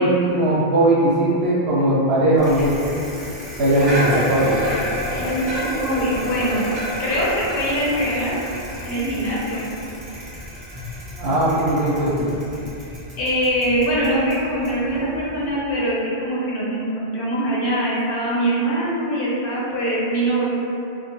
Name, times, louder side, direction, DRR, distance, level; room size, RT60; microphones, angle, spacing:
voice 1, 0.0-2.9 3.6-4.6 11.2-12.3, right 1 dB, 85° right, -10 dB, 0.8 m, -19 dB
Bicycle, 2.4-15.5, equal, 40° right, 0.8 m, -31 dB
voice 2, 5.1-6.7 7.0-8.4 8.8-9.6 13.2-20.5, right 1 dB, 65° left, -7 dB, 0.8 m, -23 dB
2.2 x 2.1 x 2.8 m, 2.7 s
omnidirectional pair, 1.1 m